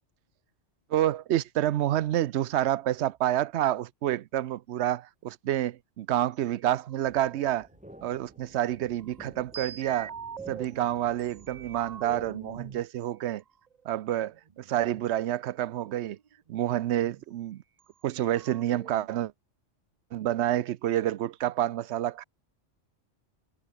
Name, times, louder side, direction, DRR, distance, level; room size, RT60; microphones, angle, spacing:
voice 1, 0.9-7.7 8.0-10.1 10.5-13.4 13.8-16.2 16.5-17.6 18.0-19.3 20.1-22.2, right 12 dB, 70° right, 0.8 m, -28 dB
sound 1, 2.2-2.8 6.5-7.9 8.7-10.6 11.2-12.8 13.7-15.0 15.6-15.7 15.9-17.2 17.8-17.9 18.1-19.1, right 7 dB, 40° right, 0.7 m, -44 dB
sound 2, 7.0-12.8, equal, 5° right, 4.0 m, -52 dB
omnidirectional pair, 1.3 m